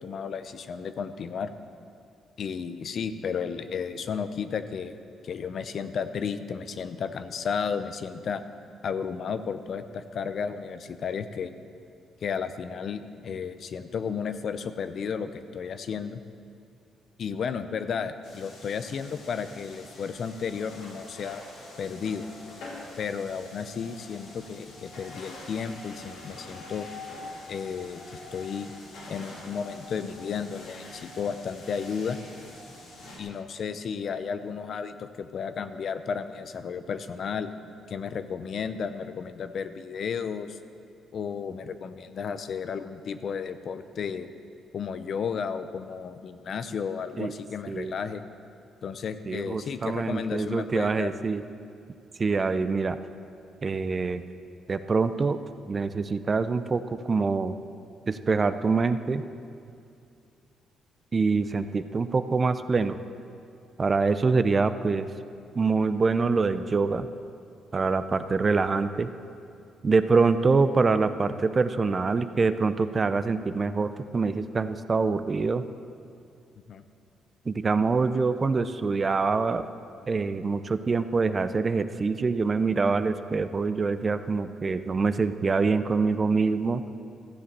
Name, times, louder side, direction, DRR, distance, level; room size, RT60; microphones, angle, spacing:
voice 1, 0.0-1.5 2.4-5.0 5.2-8.4 8.8-11.5 12.2-16.2 17.2-21.4 21.8-22.2 23.0-26.9 27.5-28.7 29.1-32.2 33.2-37.5 37.9-40.6 41.1-44.3 44.7-48.2 48.8-51.1 76.7-76.8, left 6 dB, 55° left, 11 dB, 0.6 m, -33 dB
sound 1, 18.2-33.2, left 2 dB, 80° left, 2.7 m, -45 dB
voice 2, 49.3-51.4 52.2-53.0 53.6-54.2 54.7-55.4 55.7-57.6 58.1-59.2 61.1-63.0 63.8-65.1 65.5-67.1 67.7-69.1 69.8-75.6 77.5-79.6 80.1-86.8, right 4 dB, 35° right, 12 dB, 0.5 m, -25 dB
14.0 x 7.5 x 6.7 m, 2.5 s
cardioid pair, 90°, 0 cm